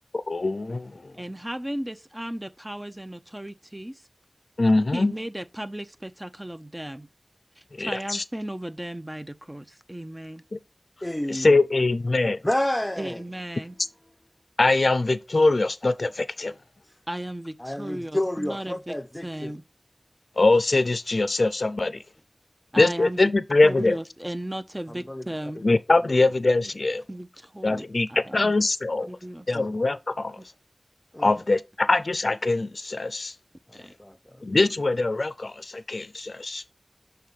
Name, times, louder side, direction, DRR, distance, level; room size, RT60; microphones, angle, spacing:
voice 1, 0.3-0.9 4.6-5.1 7.8-8.2 10.5-10.6 11.3-12.4 14.6-16.5 20.4-22.0 22.8-24.0 25.6-27.0 27.6-29.1 29.5-30.4 31.2-33.3 34.4-36.6, left 2 dB, 85° left, 0.4 m, -22 dB
voice 2, 1.1-4.0 4.9-7.1 7.6-10.4 13.0-13.8 17.1-18.9 19.2-19.6 22.7-23.3 23.6-25.6 27.1-28.6 29.1-29.5 30.4-30.5 33.7-33.9, right 1 dB, 20° right, 0.7 m, -35 dB
voice 3, 11.0-11.6 12.2-13.2 16.9-17.0 17.6-19.5 24.9-25.2 28.9-29.1 29.5-29.7 31.1-31.4 33.7-34.4, left 1 dB, 25° left, 0.6 m, -30 dB
6.4 x 3.4 x 5.3 m
wide cardioid pair, 45°, 0 cm